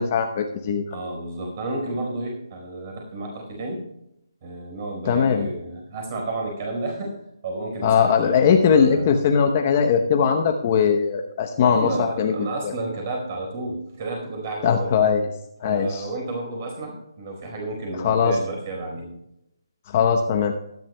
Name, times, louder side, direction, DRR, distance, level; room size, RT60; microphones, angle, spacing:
voice 1, 0.0-0.8 5.1-5.5 7.8-12.7 14.6-15.3 15.6-16.0 18.0-18.3 19.9-20.5, left 6 dB, 25° left, 4 dB, 0.8 m, -20 dB
voice 2, 0.9-3.8 4.4-7.2 7.4-9.1 11.6-14.9 15.6-19.1, right 2 dB, 30° right, 1 dB, 4.3 m, -31 dB
20.0 x 10.5 x 2.2 m, 0.82 s
hypercardioid pair, 170°, 2 cm